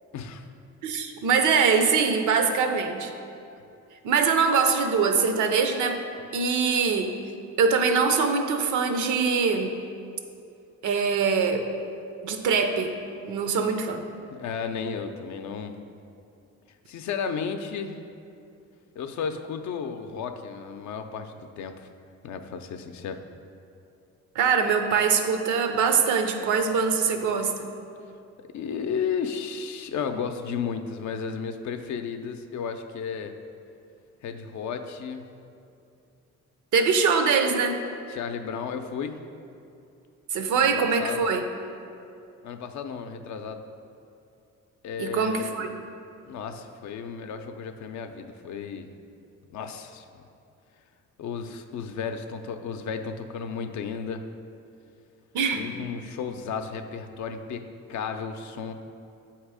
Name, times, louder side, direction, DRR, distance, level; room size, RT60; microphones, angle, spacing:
voice 1, 0.1-0.5 14.3-15.8 16.9-18.0 18.9-21.9 22.2-23.2 28.5-33.3 34.2-35.3 38.1-39.2 40.6-41.2 42.4-43.6 44.8-45.8 46.3-48.9 49.5-50.2 51.2-54.2 55.6-57.6 57.9-58.7, left 6 dB, 70° left, 7 dB, 0.5 m, -33 dB
voice 2, 0.8-3.1 4.0-6.0 6.3-7.1 7.6-9.7 10.8-11.7 12.2-12.9 13.2-14.0 24.3-27.7 36.7-37.8 40.3-41.4 45.0-45.7 55.3-55.7, right 5 dB, 80° right, 6 dB, 0.6 m, -23 dB
8.1 x 2.9 x 4.8 m, 2.6 s
cardioid pair, 90°, 30 cm